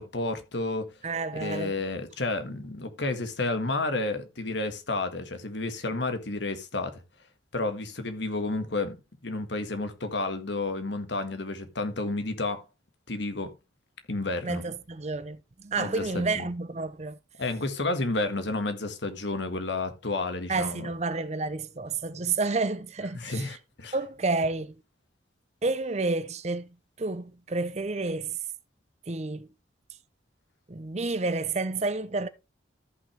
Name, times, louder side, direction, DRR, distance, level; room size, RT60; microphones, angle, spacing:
voice 1, 0.0-0.9 1.3-7.0 7.5-9.0 9.2-12.6 13.1-13.5 14.1-14.6 15.8-16.5 17.4-20.9 23.1-24.0, left 2 dB, 70° left, 1.7 m, -31 dB
voice 2, 1.0-1.8 14.4-17.2 20.5-23.5 23.9-24.7 25.6-26.7 27.0-28.4 29.1-29.5 30.7-32.3, right 3 dB, 35° right, 0.6 m, -30 dB
13.5 x 5.9 x 3.4 m
head